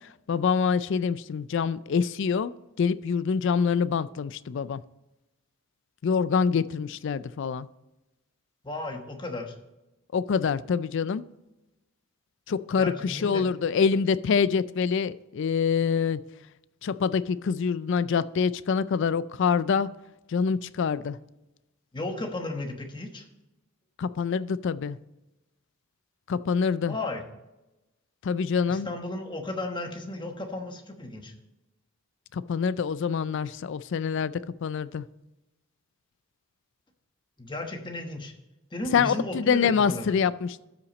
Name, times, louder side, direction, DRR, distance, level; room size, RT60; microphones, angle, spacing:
voice 1, 0.3-2.5 2.8-4.8 6.0-7.7 10.1-11.2 12.5-16.2 16.8-19.9 20.3-21.2 24.0-25.0 26.3-26.9 28.2-28.9 32.3-34.3 34.6-35.1 38.9-40.6, left 6 dB, 60° left, 17 dB, 0.4 m, -25 dB
voice 2, 8.6-9.6 12.8-13.5 21.9-23.2 26.9-27.2 28.7-31.3 37.4-38.3 38.7-40.1, left 2 dB, 20° left, 4 dB, 1.1 m, -34 dB
12.5 x 5.8 x 4.1 m, 0.98 s
head